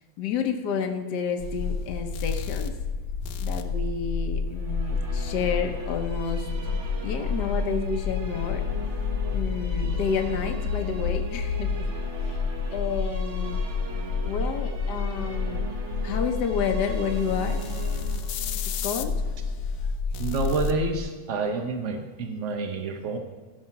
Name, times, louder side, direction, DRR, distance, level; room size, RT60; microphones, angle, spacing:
voice 1, 0.2-2.7 3.4-6.5 7.0-8.6 9.3-11.9 12.2-12.4 12.7-13.6 14.2-15.6 16.0-17.6 18.8-19.1, left 6 dB, 65° left, 4 dB, 1.3 m, -30 dB
sound 1, 1.4-21.0, left 5 dB, 85° left, 1.5 m, -29 dB
Musical instrument, 4.5-19.9, right 3 dB, 40° right, 1.4 m, -41 dB
voice 2, 20.2-23.2, right 3 dB, 60° right, 4 dB, 0.8 m, -28 dB
14.5 x 5.8 x 5.7 m, 1.4 s
omnidirectional pair, 2.1 m